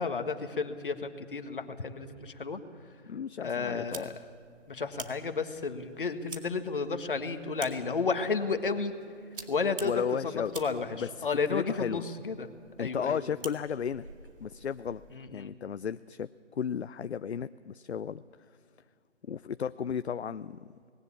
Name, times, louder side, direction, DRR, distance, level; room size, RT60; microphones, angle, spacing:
voice 1, 0.0-2.6 3.4-4.1 4.7-8.9 9.5-10.9 11.2-12.5 12.8-13.2 15.1-15.5, left 4 dB, 45° left, 8 dB, 1.6 m, -32 dB
voice 2, 3.1-4.1 9.8-10.5 10.9-12.0 12.8-14.1 14.4-15.0 15.3-18.2 19.3-20.6, left 7 dB, 65° left, 14 dB, 0.6 m, -34 dB
sound 1, 3.7-15.2, right 4 dB, 50° right, 2.1 m, -49 dB
19.5 x 17.5 x 8.5 m, 2.4 s
figure-of-eight pair, 165°, 36 cm